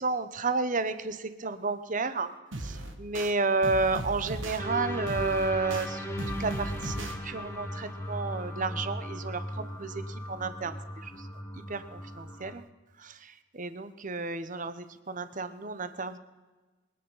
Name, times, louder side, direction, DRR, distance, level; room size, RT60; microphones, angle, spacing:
voice 1, 0.0-2.3 2.6-11.3 11.7-12.6 13.0-16.2, right 3 dB, 40° right, 12 dB, 1.0 m, -32 dB
sound 1, 2.5-3.3 3.6-4.6 5.1-5.9 6.2-7.1, right 2 dB, 80° right, 1.7 m, -37 dB
sound 2, 4.6-12.6, left 1 dB, 15° left, 1.6 m, -37 dB
22.5 x 9.7 x 5.7 m, 1.2 s
head